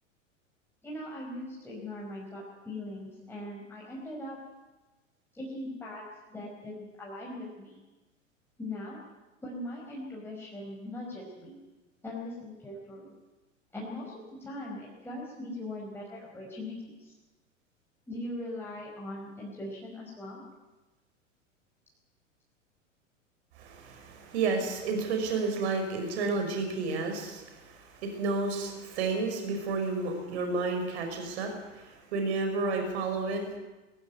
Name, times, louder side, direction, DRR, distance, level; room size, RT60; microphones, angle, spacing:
voice 1, 0.8-4.4 5.3-6.0 6.3-7.8 8.6-9.0 9.4-11.6 12.0-13.1 13.7-17.2 18.1-20.4, left 1 dB, 5° left, -4 dB, 5.3 m, -40 dB
voice 2, 23.6-33.6, right 3 dB, 55° right, 5 dB, 5.6 m, -31 dB
22.0 x 15.5 x 9.4 m, 1.1 s
figure-of-eight pair, 90°, 39 cm